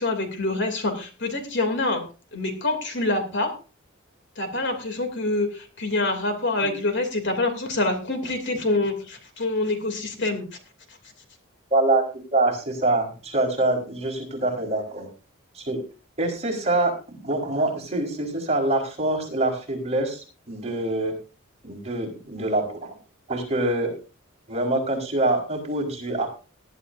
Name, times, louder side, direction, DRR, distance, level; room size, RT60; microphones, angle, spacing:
voice 1, 0.0-2.0 2.3-3.5 4.4-10.5 10.9-11.0, left 2 dB, 55° left, 6 dB, 2.8 m, -26 dB
voice 2, 11.7-12.0 12.3-15.1 15.5-15.8 16.2-21.1 21.6-23.0 23.3-23.9 24.5-26.3, right 2 dB, 30° right, -1 dB, 4.2 m, -25 dB
19.5 x 11.5 x 2.6 m, 0.34 s
head